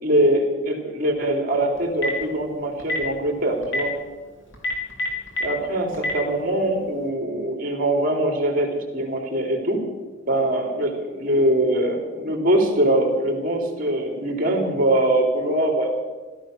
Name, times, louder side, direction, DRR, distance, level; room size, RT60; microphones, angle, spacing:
voice 1, 0.0-4.0 5.4-9.8 10.3-15.9, right 1 dB, 45° right, 3 dB, 3.3 m, -22 dB
Telephone, 1.8-2.2 2.8-3.0 3.6-3.8 4.5-5.4 5.9-6.1, left 1 dB, 75° left, 4.1 m, -25 dB
15.5 x 14.0 x 6.6 m, 1.3 s
head